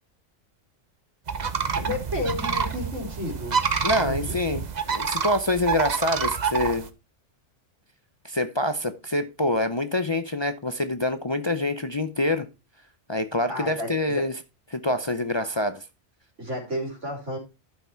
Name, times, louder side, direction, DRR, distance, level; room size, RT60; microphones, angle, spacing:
sound 1, 1.3-6.9, right 6 dB, 40° right, 0.9 m, -28 dB
voice 1, 1.8-3.7 3.9-4.3 13.5-14.2 16.4-17.4, left 1 dB, 90° right, 3.7 m, -32 dB
voice 2, 3.8-6.9 8.2-12.5 13.1-14.3 14.7-15.8, left 1 dB, 30° left, 0.5 m, -26 dB
11.5 x 5.8 x 4.3 m
omnidirectional pair, 1.2 m